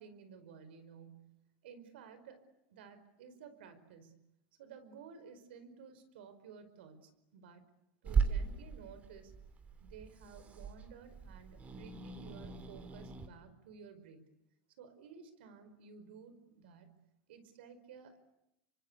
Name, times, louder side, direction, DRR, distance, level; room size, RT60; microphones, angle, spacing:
voice 1, 0.0-1.4 1.6-2.4 2.7-4.2 4.6-7.6 8.0-9.3 9.8-14.3 14.8-17.0 17.3-18.3, right 6 dB, 85° right, 11 dB, 5.0 m, -54 dB
Growling / Hiss, 8.0-13.3, right 5 dB, 25° right, 3.1 m, -38 dB
29.0 x 24.5 x 8.5 m, 0.85 s
supercardioid pair, 130°, 6 cm